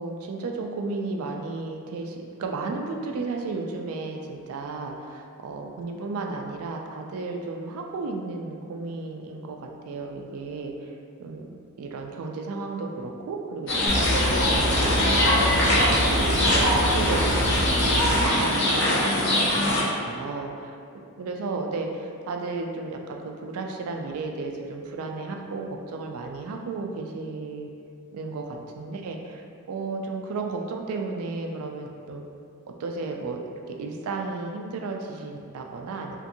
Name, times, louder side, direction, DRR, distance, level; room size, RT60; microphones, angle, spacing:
voice 1, 0.0-11.5 11.8-15.4 15.6-19.5 19.8-20.8 21.2-27.7 28.1-32.2 32.8-33.4 33.7-36.2, right 3 dB, 70° right, 2 dB, 0.3 m, -33 dB
sound 1, 13.7-19.8, left 1 dB, 55° left, 0.6 m, -22 dB
sound 2, 13.9-18.3, equal, 85° left, 0.8 m, -27 dB
2.6 x 2.5 x 2.5 m, 2.3 s
head